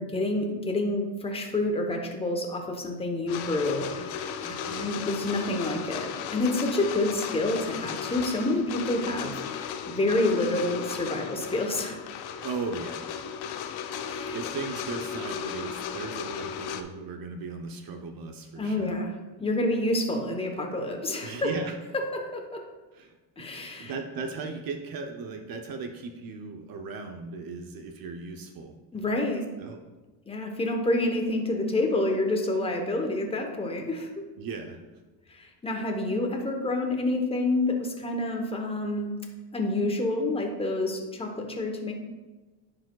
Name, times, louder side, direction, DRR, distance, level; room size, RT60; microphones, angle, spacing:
voice 1, 0.0-12.0 14.0-14.4 18.6-19.1 19.4-21.5 22.1-22.6 23.4-23.9 28.9-29.4 30.3-34.2 35.3-39.2 39.5-41.9, left 2 dB, 10° left, 3 dB, 0.9 m, -28 dB
sound 1, 3.3-16.8, left 7 dB, 55° left, 0.6 m, -35 dB
voice 2, 12.4-13.4 13.9-19.0 21.2-21.7 22.9-23.2 23.8-28.7 29.6-29.8 34.4-34.8, right 4 dB, 45° right, 4 dB, 0.7 m, -37 dB
9.9 x 4.9 x 2.3 m, 1.2 s
supercardioid pair, 105°, 48 cm